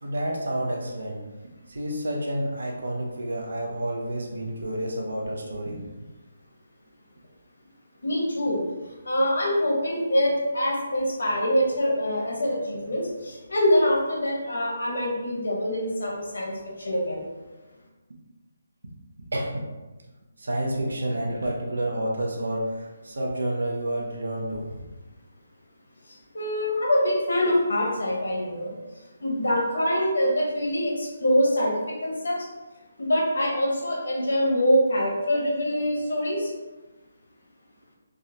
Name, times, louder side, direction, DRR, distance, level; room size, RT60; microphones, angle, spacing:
voice 1, 0.0-1.2 1.7-5.9 19.3-19.7 20.4-24.9, right 1 dB, 85° right, -1 dB, 0.7 m, -29 dB
voice 2, 8.0-8.6 9.0-17.2 26.1-28.7 29.2-32.5 33.0-36.5, equal, 90° left, -2 dB, 1.1 m, -24 dB
3.6 x 2.1 x 2.8 m, 1.1 s
hypercardioid pair, 175°, 0 cm